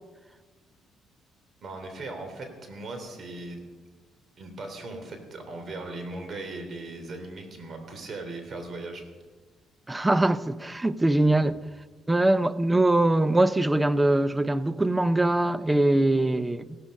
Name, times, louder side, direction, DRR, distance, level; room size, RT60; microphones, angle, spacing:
voice 1, 1.6-3.6 4.4-9.1, right 2 dB, 45° right, 3.3 m, -38 dB
voice 2, 9.9-11.6 12.1-16.8, right 1 dB, 10° right, 0.6 m, -22 dB
16.0 x 13.0 x 5.4 m
cardioid pair, 115°, 0 cm